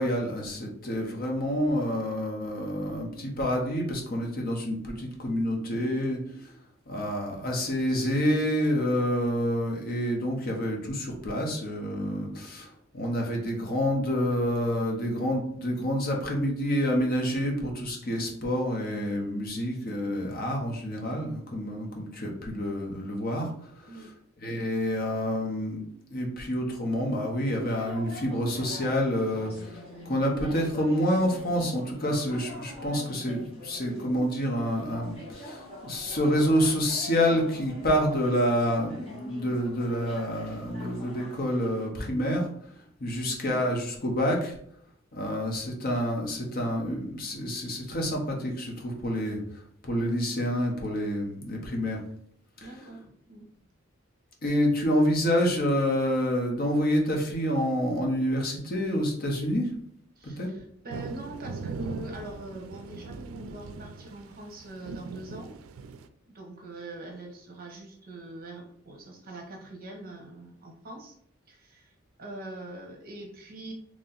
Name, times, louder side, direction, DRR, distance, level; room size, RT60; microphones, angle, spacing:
voice 1, 0.0-6.5 6.9-12.7 12.9-23.5 23.9-24.1 24.4-25.8 26.1-42.5 43.0-44.5 45.1-49.4 49.8-52.0 52.6-52.7 54.4-59.7 60.2-60.5, equal, 45° left, 0 dB, 0.9 m, -28 dB
sound 1, 27.6-41.9, left 1 dB, 30° left, 1.3 m, -44 dB
voice 2, 52.6-53.4 60.2-65.5 66.3-71.2 71.5-71.9 72.2-73.7, right 2 dB, 45° right, 2 dB, 0.9 m, -43 dB
sound 2, 60.9-66.1, right 4 dB, 90° right, 0.3 m, -40 dB
3.1 x 2.7 x 3.9 m, 0.67 s
head